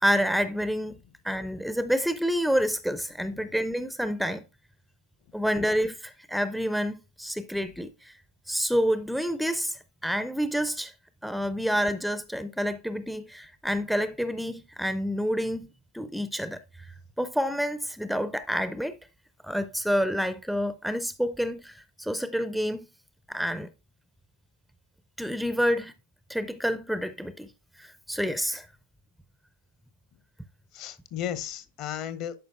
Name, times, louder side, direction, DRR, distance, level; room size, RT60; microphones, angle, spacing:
voice 1, 0.0-1.0 1.2-4.4 5.3-8.2 8.5-10.9 11.2-15.7 15.9-16.9 17.2-19.0 19.4-22.9 23.3-23.7 25.2-25.9 26.3-27.5 27.8-28.7, equal, ahead, 0.4 m, -28 dB
voice 2, 30.7-32.3, left 10 dB, 40° left, 0.7 m, -35 dB
11.0 x 5.1 x 2.4 m
figure-of-eight pair, 90°, 0 cm